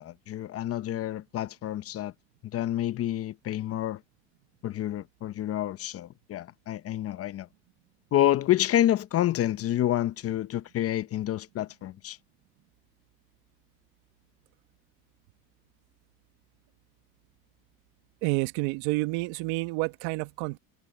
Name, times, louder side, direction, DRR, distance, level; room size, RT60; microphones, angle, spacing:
voice 1, 0.0-2.1 2.4-4.0 4.6-7.5 8.1-12.2, left 12 dB, 35° left, 0.7 m, -28 dB
voice 2, 18.2-20.6, right 22 dB, 70° right, 1.4 m, -29 dB
supercardioid pair, 115°, 39 cm